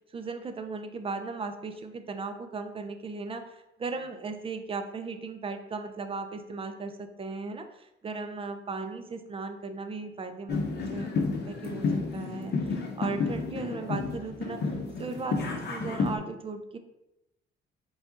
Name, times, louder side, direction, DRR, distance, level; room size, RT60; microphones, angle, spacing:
voice 1, 0.1-11.1 11.5-14.6 15.0-16.8, right 4 dB, 30° right, 7 dB, 0.5 m, -37 dB
sound 1, 10.5-16.2, left 4 dB, 55° left, 0.8 m, -31 dB
4.8 x 2.4 x 3.9 m, 0.89 s
cardioid pair, 90°, 20 cm